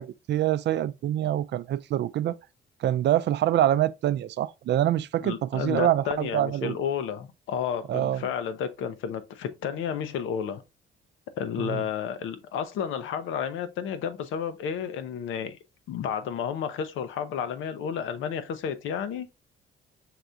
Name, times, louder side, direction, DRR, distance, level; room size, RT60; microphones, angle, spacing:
voice 1, 0.0-2.4 2.8-6.8 7.9-8.3 11.6-11.8, right 12 dB, 60° right, 0.4 m, -25 dB
voice 2, 5.2-10.6 11.4-15.6 15.9-19.3, left 8 dB, 85° left, 0.7 m, -31 dB
5.9 x 3.4 x 2.6 m
cardioid pair, 90°, 20 cm